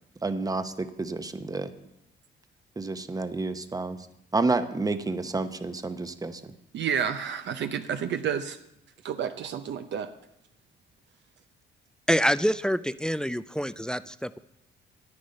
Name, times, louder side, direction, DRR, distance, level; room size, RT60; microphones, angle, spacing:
voice 1, 0.2-1.7 2.8-4.0 4.3-6.5, right 3 dB, 20° right, 10 dB, 0.9 m, -29 dB
voice 2, 6.7-8.6 9.0-10.1, right 8 dB, 65° right, 7 dB, 0.7 m, -30 dB
voice 3, 12.1-14.4, equal, 5° left, 15 dB, 0.3 m, -26 dB
10.5 x 9.5 x 5.3 m, 0.81 s
cardioid pair, 90°, 20 cm